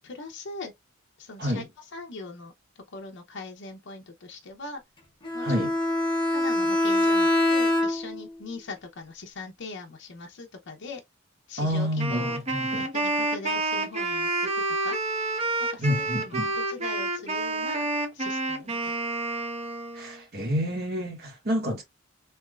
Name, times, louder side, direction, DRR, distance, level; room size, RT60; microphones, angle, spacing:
voice 1, 0.0-0.7 1.2-2.5 2.9-4.8 5.3-5.6 6.3-11.0 11.5-12.4 12.8-15.0 15.7-17.9 18.1-18.9, left 3 dB, 65° left, 0.7 m, -41 dB
Bowed string instrument, 5.2-8.2, left 1 dB, 25° left, 1.1 m, -24 dB
voice 2, 5.4-5.7 11.6-12.8 15.8-16.5 19.9-21.8, equal, 55° right, 1.7 m, -28 dB
Wind instrument woodwind instrument, 12.0-20.2, right 2 dB, 35° right, 0.8 m, -29 dB
3.4 x 3.1 x 2.3 m
head